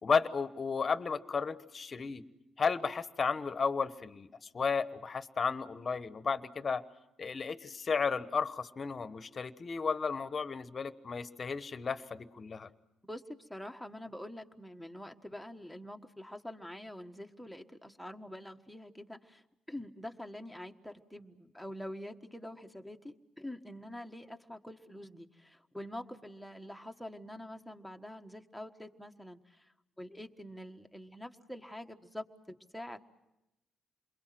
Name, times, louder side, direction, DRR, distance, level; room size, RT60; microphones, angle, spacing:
voice 1, 0.0-2.2 2.6-6.8 7.2-12.7, left 5 dB, 40° left, 13 dB, 1.1 m, -33 dB
voice 2, 13.0-33.0, left 1 dB, ahead, 7 dB, 1.5 m, -46 dB
28.0 x 22.0 x 7.7 m, 0.89 s
cardioid pair, 90°, 0 cm